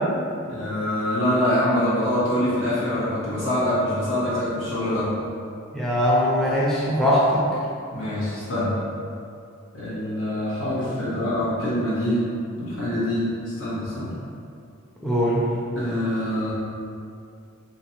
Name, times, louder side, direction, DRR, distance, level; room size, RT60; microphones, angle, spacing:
voice 1, 0.3-5.1 7.9-8.8 9.7-12.2 12.6-14.1 15.7-16.5, left 1 dB, 75° left, -10 dB, 1.3 m, -25 dB
voice 2, 5.7-7.4 15.0-15.4, equal, ahead, -7 dB, 0.5 m, -21 dB
3.8 x 2.5 x 2.8 m, 2.5 s
head